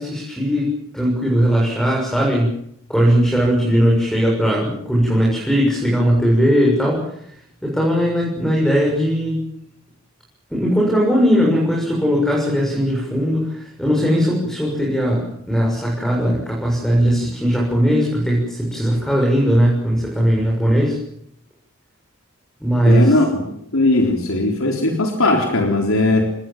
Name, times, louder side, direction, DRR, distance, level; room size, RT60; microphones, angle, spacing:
voice 1, 0.0-2.5 2.9-7.1 7.6-9.4 10.5-21.0 22.6-23.2, equal, ahead, -2 dB, 6.9 m, -18 dB
voice 2, 22.8-26.3, left 2 dB, 75° left, 3 dB, 3.9 m, -18 dB
29.5 x 20.0 x 7.5 m, 0.72 s
head